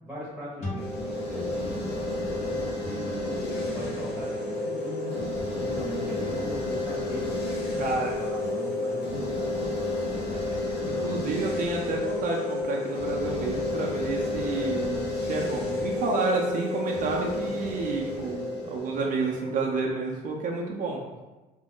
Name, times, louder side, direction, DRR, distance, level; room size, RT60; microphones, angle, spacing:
voice 1, 0.0-1.8 2.7-7.3 7.8-9.5 10.2-10.7, equal, ahead, -8 dB, 0.9 m, -39 dB
sound 1, 0.6-4.0, left 1 dB, 40° left, 1.0 m, -42 dB
sound 2, 0.8-19.8, left 2 dB, 80° left, 0.7 m, -31 dB
voice 2, 7.8-8.1 10.8-21.0, right 3 dB, 55° right, -1 dB, 0.5 m, -30 dB
2.4 x 2.1 x 3.6 m, 1.1 s
cardioid pair, 110°, 17 cm